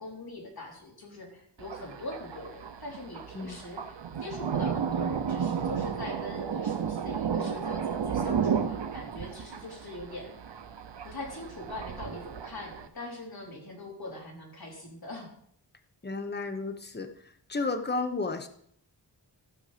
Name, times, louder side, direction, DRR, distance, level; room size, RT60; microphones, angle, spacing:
voice 1, 0.0-10.4 11.0-15.3, left 2 dB, 55° left, -1 dB, 3.7 m, -42 dB
Thunder, 1.6-12.9, right 7 dB, 75° right, 0.9 m, -33 dB
voice 2, 16.0-17.1 17.5-18.5, left 3 dB, 25° left, 7 dB, 1.1 m, -32 dB
15.0 x 6.4 x 5.1 m, 0.68 s
wide cardioid pair, 80°, 43 cm